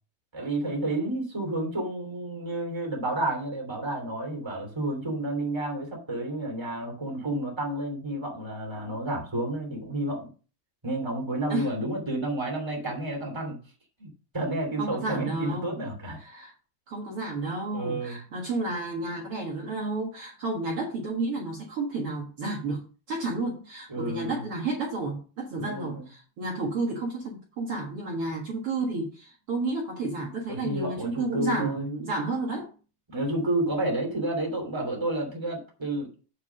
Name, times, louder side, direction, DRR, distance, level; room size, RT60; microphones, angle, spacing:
voice 1, 0.3-10.3 10.8-13.6 14.0-16.2 17.7-18.2 23.9-24.4 25.6-26.1 30.5-31.9 33.1-36.1, right 1 dB, 10° right, 2.0 m, -30 dB
voice 2, 14.8-15.7 16.2-16.5 16.9-22.8 23.1-32.7, right 3 dB, 55° right, 1.7 m, -31 dB
8.3 x 4.9 x 6.2 m
omnidirectional pair, 4.7 m